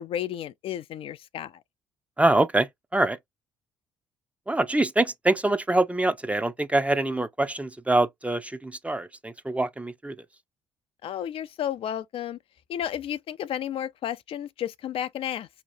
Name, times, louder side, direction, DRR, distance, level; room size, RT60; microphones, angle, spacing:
voice 1, 0.0-1.5 11.0-12.4 12.7-15.5, left 10 dB, 55° left, 0.4 m, -32 dB
voice 2, 2.2-3.2 4.5-10.1, right 2 dB, 10° right, 0.6 m, -25 dB
4.3 x 2.9 x 2.5 m
hypercardioid pair, 55°, 11 cm